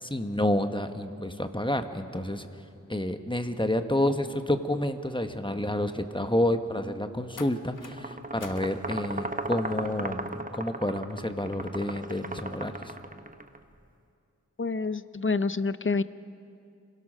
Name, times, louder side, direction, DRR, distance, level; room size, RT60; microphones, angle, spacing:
voice 1, 0.0-2.5 2.9-12.9, left 1 dB, 15° left, 8 dB, 1.2 m, -29 dB
sound 1, 4.9-5.2 7.4-8.0 8.4-8.8 9.7-9.9, left 4 dB, 80° left, 1.0 m, -47 dB
sound 2, 7.8-13.6, right 2 dB, 25° right, 1.1 m, -36 dB
voice 2, 14.6-16.0, left 4 dB, 40° left, 14 dB, 0.6 m, -27 dB
26.5 x 17.0 x 6.3 m, 2.5 s
wide cardioid pair, 45°, 31 cm